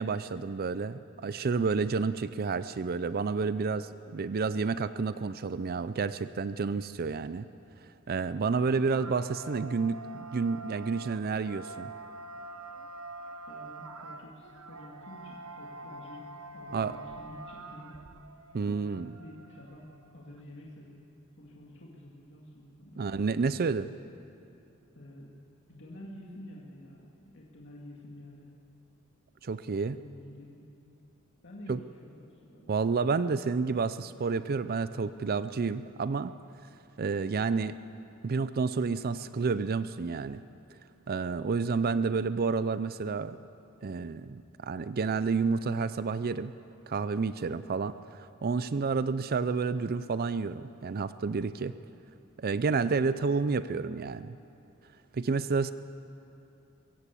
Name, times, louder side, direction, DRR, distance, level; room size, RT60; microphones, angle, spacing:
voice 1, 0.0-7.5 8.1-10.0 10.3-11.9 16.7-16.9 18.5-19.1 23.0-23.9 29.4-30.0 31.7-31.8 32.7-36.3 37.0-37.8 38.2-40.4 41.1-43.4 43.8-46.5 46.9-51.7 52.4-54.3 55.1-55.7, right 4 dB, 45° right, 14 dB, 0.4 m, -30 dB
sound 1, 9.0-20.4, right 3 dB, 80° right, 1.0 m, -46 dB
voice 2, 13.5-16.3 16.5-18.0 18.8-19.9 20.1-21.0 21.4-23.1 25.0-25.3 25.7-28.5 30.0-30.7 31.4-32.7, left 1 dB, 60° left, -3 dB, 2.2 m, -49 dB
23.0 x 15.5 x 8.4 m, 2.6 s
head